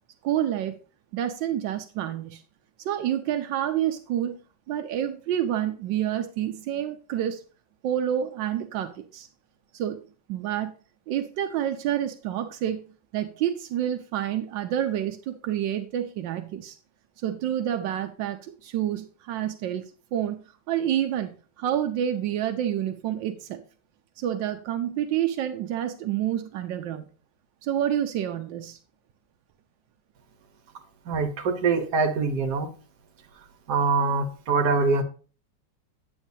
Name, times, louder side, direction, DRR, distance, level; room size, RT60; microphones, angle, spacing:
voice 1, 0.2-0.8 1.1-2.4 2.8-4.4 4.7-7.4 7.8-9.3 9.7-10.0 10.3-10.7 11.1-12.8 13.1-16.8 17.2-20.4 20.7-23.6 24.2-27.1 27.6-28.8, right 11 dB, 90° right, 6 dB, 1.4 m, -28 dB
voice 2, 31.1-32.7 33.7-35.0, right 4 dB, 65° right, 5 dB, 1.7 m, -24 dB
8.9 x 8.0 x 2.7 m, 0.37 s
omnidirectional pair, 1.9 m